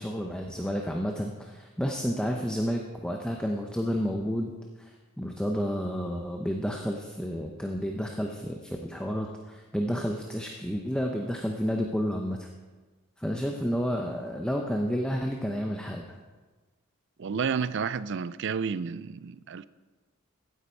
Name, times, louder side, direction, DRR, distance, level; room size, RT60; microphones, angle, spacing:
voice 1, 0.0-4.5 4.8-12.5 13.2-16.2, equal, 5° left, 0.7 m, -31 dB
voice 2, 17.2-19.6, right 6 dB, 55° right, 0.4 m, -31 dB
15.5 x 9.4 x 4.5 m
head